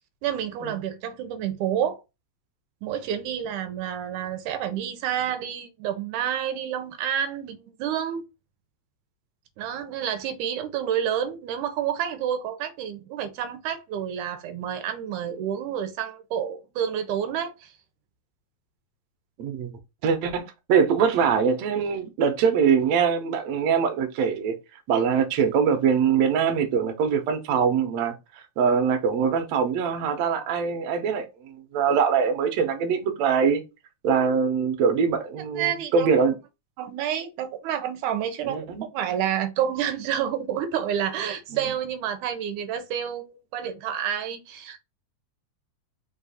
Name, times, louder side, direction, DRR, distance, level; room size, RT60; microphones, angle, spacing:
voice 1, 0.2-2.0 2.8-8.2 9.6-17.7 35.6-36.1 36.8-44.8, right 9 dB, 90° right, 2.1 m, -29 dB
voice 2, 19.4-19.7 20.0-24.5 24.9-28.2 28.6-33.6 34.0-36.4 38.4-38.8, right 6 dB, 70° right, 1.8 m, -23 dB
4.6 x 2.5 x 4.0 m
omnidirectional pair, 3.4 m